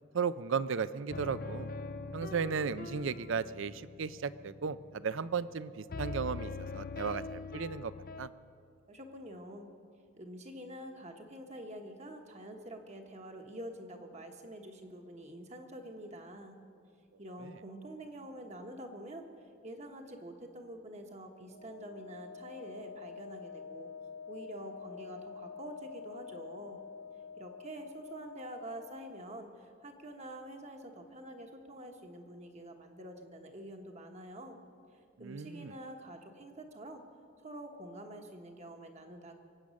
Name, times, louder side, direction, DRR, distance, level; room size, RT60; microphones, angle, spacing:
voice 1, 0.1-1.7 2.1-7.9 8.2-8.3 35.2-35.8, right 6 dB, 65° right, 16 dB, 0.4 m, -35 dB
sound 1, 1.1-5.6 5.9-8.3, left 3 dB, 45° left, 0.5 m, -43 dB
voice 2, 8.9-9.7 10.2-16.6 17.2-23.9 24.3-26.8 27.4-34.6 34.9-37.0 37.4-39.3, right 1 dB, 30° right, 4 dB, 1.2 m, -47 dB
Wind instrument woodwind instrument, 21.4-29.2, left 6 dB, 60° left, 1.7 m, -48 dB
23.0 x 8.6 x 6.4 m, 2.4 s
head